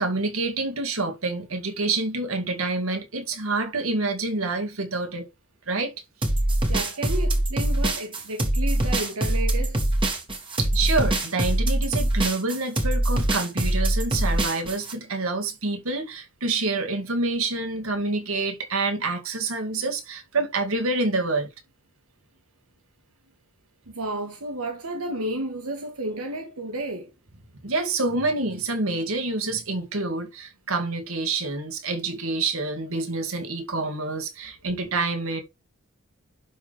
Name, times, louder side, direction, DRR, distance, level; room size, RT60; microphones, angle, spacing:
voice 1, 0.0-5.3 5.7-5.9 10.6-21.5 27.6-35.4, right 3 dB, 70° right, 2.2 m, -27 dB
sound 1, 6.2-14.9, right 1 dB, 25° right, 2.2 m, -23 dB
voice 2, 6.7-9.8 23.9-27.1, right 1 dB, 90° right, 1.5 m, -32 dB
11.5 x 4.1 x 3.5 m
head